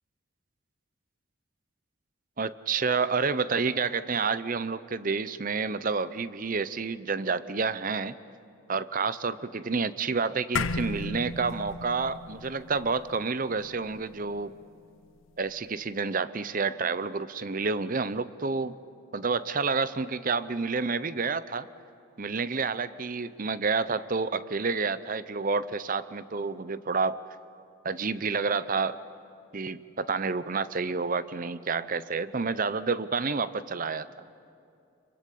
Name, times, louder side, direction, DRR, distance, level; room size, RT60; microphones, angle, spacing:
voice 1, 2.4-8.2 8.7-14.5 15.4-18.8 19.1-21.7 22.2-27.2 27.8-29.0 29.5-34.1, right 4 dB, 40° right, 15 dB, 0.7 m, -29 dB
sound 1, 10.6-15.2, left 3 dB, 70° left, 0.7 m, -35 dB
26.0 x 23.5 x 8.5 m, 2.6 s
head